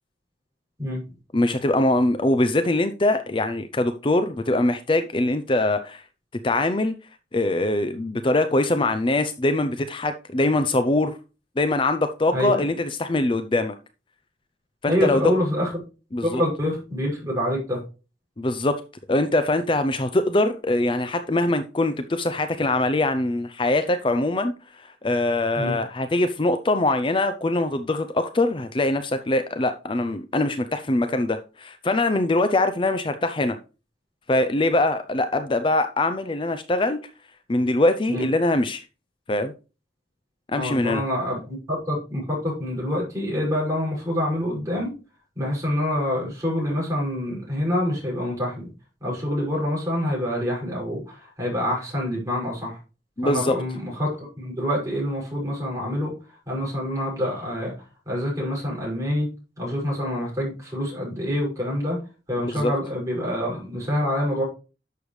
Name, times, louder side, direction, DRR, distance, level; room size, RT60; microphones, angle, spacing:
voice 1, 1.3-6.0 6.4-6.9 7.3-11.1 11.6-13.7 14.8-15.3 16.1-16.4 18.4-18.7 19.1-33.6 34.3-37.0 37.5-38.9 39.3-39.5 40.5-41.0 53.2-53.5 62.5-62.7, left 2 dB, 30° left, 0.5 m, -23 dB
voice 2, 14.9-15.7 16.2-17.8 25.6-25.7 38.1-38.3 40.5-44.9 45.3-48.7 49.0-52.8 53.2-57.7 58.1-59.3 59.6-62.0 62.3-64.4, left 1 dB, 15° right, 6.0 m, -26 dB
11.0 x 6.9 x 3.2 m
head